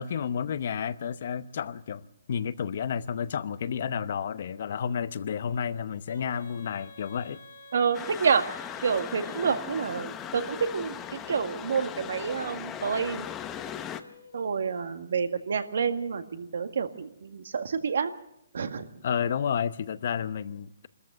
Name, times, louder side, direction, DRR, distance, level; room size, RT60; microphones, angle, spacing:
voice 1, 0.0-7.4 19.0-20.9, left 7 dB, 50° left, 0.8 m, -31 dB
Female singing, 6.0-14.9, left 2 dB, 85° left, 5.0 m, -50 dB
voice 2, 7.7-8.4 8.8-11.0 11.3-13.3 14.3-18.1 18.5-18.9, right 6 dB, 70° right, 1.8 m, -28 dB
sound 1, 7.9-14.0, left 9 dB, 15° left, 0.8 m, -38 dB
24.5 x 14.0 x 7.8 m
hypercardioid pair, 165°, 0 cm